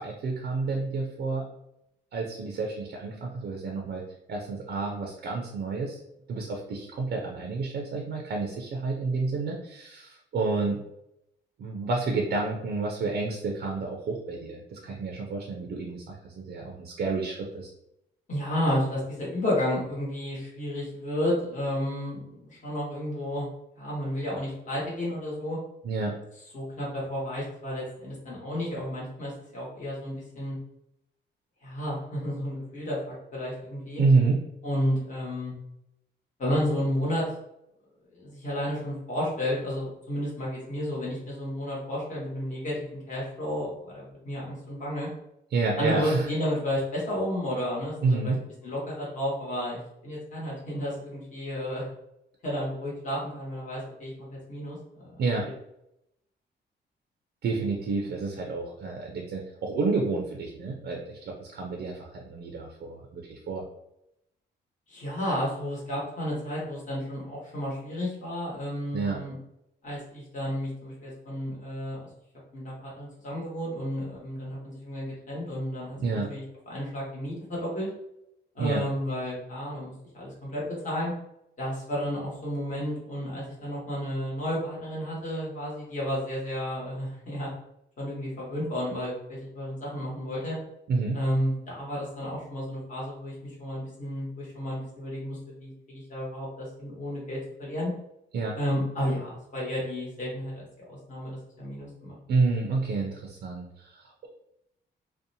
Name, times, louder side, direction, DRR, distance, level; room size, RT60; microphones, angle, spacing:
voice 1, 0.0-1.4 2.1-4.0 4.3-6.0 6.3-10.8 11.6-17.7 25.8-26.1 34.0-34.4 45.5-46.3 48.0-48.4 55.2-55.5 57.4-63.6 68.9-69.2 76.0-76.3 78.6-78.8 90.9-91.2 98.3-98.5 102.3-104.3, right 3 dB, 60° right, 0 dB, 0.4 m, -29 dB
voice 2, 18.3-23.5 23.8-25.6 26.5-30.6 31.6-34.0 34.6-35.5 36.4-37.2 38.1-45.1 45.8-48.3 48.6-51.9 52.4-55.2 64.9-69.4 69.8-72.1 72.5-77.9 78.5-81.1 81.6-87.5 88.0-90.6 91.1-93.3 93.6-97.9 98.5-102.2, equal, 40° left, -5 dB, 1.1 m, -32 dB
2.6 x 2.1 x 2.7 m, 0.82 s
cardioid pair, 125°, 19 cm